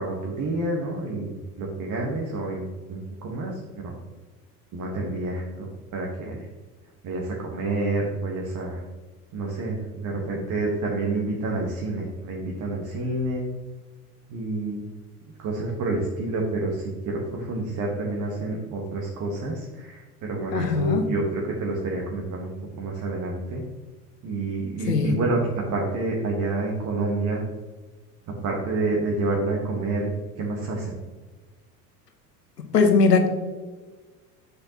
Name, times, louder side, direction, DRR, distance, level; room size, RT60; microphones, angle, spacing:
voice 1, 0.0-3.9 4.7-6.4 7.0-8.8 9.3-13.5 14.3-14.8 15.4-23.6 24.2-27.4 28.4-30.1 30.4-31.0, right 2 dB, 40° right, -1 dB, 1.5 m, -28 dB
voice 2, 20.5-21.1 24.9-25.2 32.7-33.3, left 4 dB, 85° left, 6 dB, 1.0 m, -20 dB
7.9 x 6.6 x 3.0 m, 1.3 s
figure-of-eight pair, 75°, 47 cm